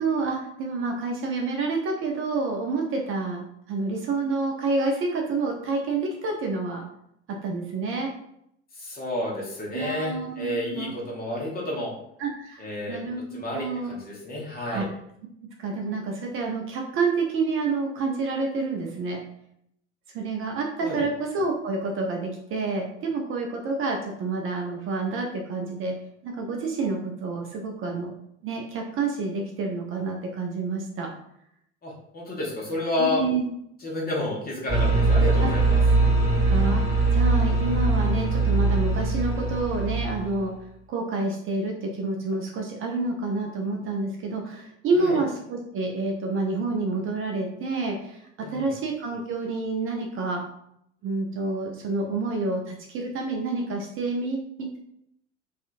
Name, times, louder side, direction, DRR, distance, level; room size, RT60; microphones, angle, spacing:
voice 1, 0.0-6.9 7.4-8.1 9.7-10.9 12.2-13.9 14.7-14.9 15.6-19.2 20.1-25.9 26.2-28.1 28.4-31.1 33.0-33.5 35.4-35.5 36.5-36.8 37.1-40.5 40.9-48.2 48.5-50.4 51.0-54.8, right 3 dB, 40° right, 1 dB, 0.5 m, -28 dB
voice 2, 8.7-11.9 12.6-13.0 13.3-14.9 20.8-21.0 31.8-33.2 33.8-35.8 44.9-45.2 48.4-48.7, left 1 dB, 25° left, -2 dB, 1.0 m, -30 dB
sound 1, 34.7-40.4, right 3 dB, 10° right, 1.1 m, -22 dB
2.7 x 2.4 x 2.5 m, 0.74 s
hypercardioid pair, 75°, 35 cm